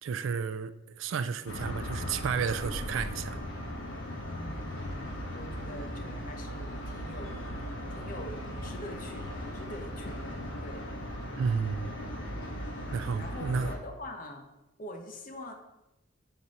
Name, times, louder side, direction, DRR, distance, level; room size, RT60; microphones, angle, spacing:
voice 1, 0.0-3.4 5.7-5.8 11.4-11.9 12.9-13.7, right 6 dB, 70° right, 0.3 m, -32 dB
sound 1, 1.5-13.8, equal, 80° left, 1.1 m, -38 dB
voice 2, 4.2-7.4 7.9-10.2 10.6-10.8 13.2-14.5 14.8-15.5, left 1 dB, 45° left, 0.8 m, -44 dB
5.8 x 4.9 x 4.1 m
head